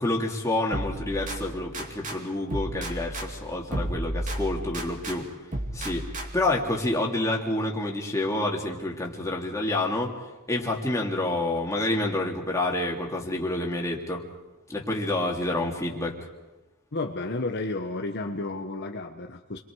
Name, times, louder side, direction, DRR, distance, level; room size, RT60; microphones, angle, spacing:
voice 1, 0.0-5.3 5.7-6.1 6.3-10.1 10.5-14.2 14.7-16.1, left 2 dB, 15° left, -2 dB, 3.0 m, -28 dB
sound 1, 0.7-2.2 2.5-5.2 5.5-6.5, right 1 dB, 35° right, 2.8 m, -33 dB
voice 2, 16.9-19.6, left 2 dB, 50° left, 3 dB, 1.1 m, -32 dB
29.5 x 23.0 x 4.8 m, 1.1 s
head